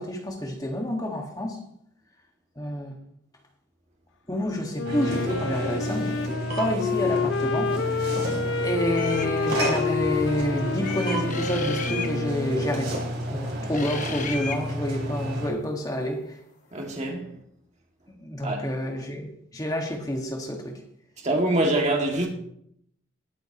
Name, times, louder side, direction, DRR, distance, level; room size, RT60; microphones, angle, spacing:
voice 1, 0.0-1.6 2.6-2.9 4.3-8.2 8.6-13.0 13.3-16.2 18.1-20.8, equal, 20° left, 1.7 m, -29 dB
Wind instrument woodwind instrument, 4.7-13.1, left 5 dB, 65° left, 0.5 m, -29 dB
sound 1, 4.8-15.5, equal, 55° right, 3.4 m, -31 dB
sound 2, 8.9-9.3 10.8-12.1 13.7-14.6, left 5 dB, 40° left, 1.0 m, -34 dB
voice 2, 16.7-17.3 18.4-18.7 21.2-22.3, right 1 dB, 35° right, 2.2 m, -24 dB
20.0 x 7.7 x 3.0 m
head